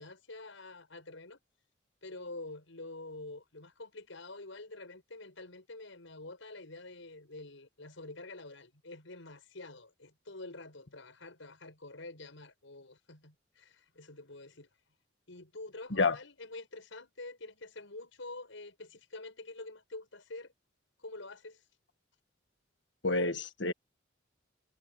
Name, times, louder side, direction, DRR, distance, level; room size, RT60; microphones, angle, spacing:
voice 1, 0.0-1.4 2.0-14.7 15.3-20.5 21.0-21.6, left 2 dB, 85° left, 5.6 m, -47 dB
voice 2, 23.0-23.7, left 3 dB, 65° left, 1.7 m, -28 dB
head